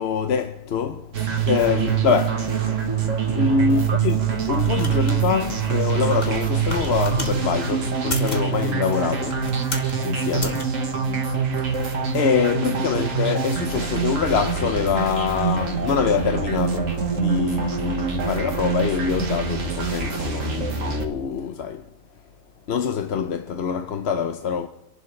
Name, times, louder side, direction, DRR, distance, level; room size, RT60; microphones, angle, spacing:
voice 1, 0.0-2.5 3.4-9.5 10.0-10.7 11.6-21.9 22.7-24.7, left 6 dB, 55° left, 0.9 m, -25 dB
sound 1, 1.1-21.1, right 6 dB, 70° right, 1.7 m, -25 dB
sound 2, 4.3-7.4 8.0-8.5 9.2-10.0 10.4-10.6, left 2 dB, 35° left, 1.5 m, -34 dB
26.5 x 11.0 x 3.2 m
omnidirectional pair, 1.4 m